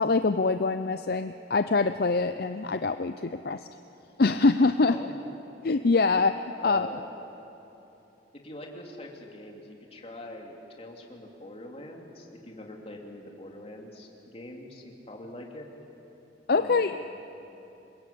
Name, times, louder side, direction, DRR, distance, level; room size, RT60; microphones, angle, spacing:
voice 1, 0.0-3.7 4.2-5.0 5.6-6.9 16.5-17.0, left 3 dB, 55° left, 9 dB, 0.6 m, -24 dB
voice 2, 4.8-5.1 6.6-7.1 8.3-15.7 16.5-17.0, left 1 dB, 35° left, 0 dB, 3.0 m, -43 dB
26.5 x 21.5 x 8.6 m, 3.0 s
head